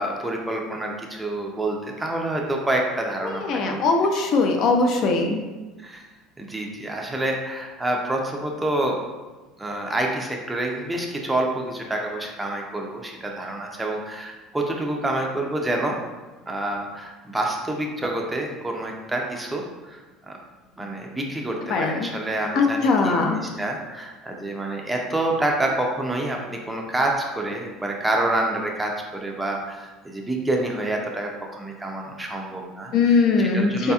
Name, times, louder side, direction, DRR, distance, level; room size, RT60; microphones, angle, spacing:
voice 1, 0.0-3.8 5.8-6.0 6.4-9.0 9.6-16.0 16.5-20.4 20.7-23.1 23.6-33.9, right 1 dB, 10° right, 0 dB, 0.4 m, -27 dB
voice 2, 3.2-5.4 21.7-22.1 22.5-23.4 32.9-33.9, left 4 dB, 50° left, 3 dB, 0.4 m, -21 dB
4.1 x 2.7 x 2.3 m, 1.2 s
cardioid pair, 130°, 0 cm